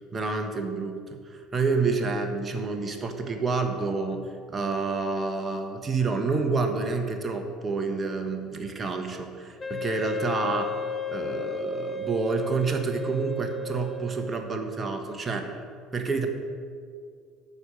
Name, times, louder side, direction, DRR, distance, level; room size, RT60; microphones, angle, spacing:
voice 1, 0.1-10.7 11.1-15.5 15.9-16.3, right 4 dB, 30° right, 5 dB, 1.3 m, -28 dB
Wind instrument woodwind instrument, 9.6-14.7, left 2 dB, 30° left, 0.8 m, -34 dB
12.5 x 4.9 x 7.6 m, 2.2 s
hypercardioid pair, 75°, 0 cm